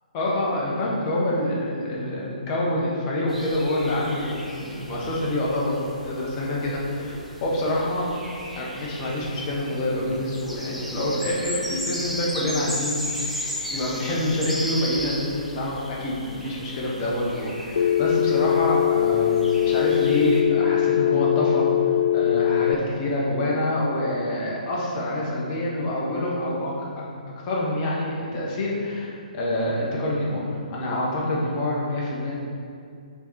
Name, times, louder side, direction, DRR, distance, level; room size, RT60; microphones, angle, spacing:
voice 1, 0.1-8.0 8.5-13.4 13.7-21.7 22.1-26.9 27.4-32.3, left 1 dB, 30° left, -4 dB, 1.5 m, -26 dB
sound 1, 3.3-20.4, equal, ahead, 0.9 m, -35 dB
Telephone, 17.8-22.8, left 10 dB, 60° left, 0.3 m, -21 dB
6.1 x 4.2 x 4.7 m, 2.3 s
figure-of-eight pair, 130°, 5 cm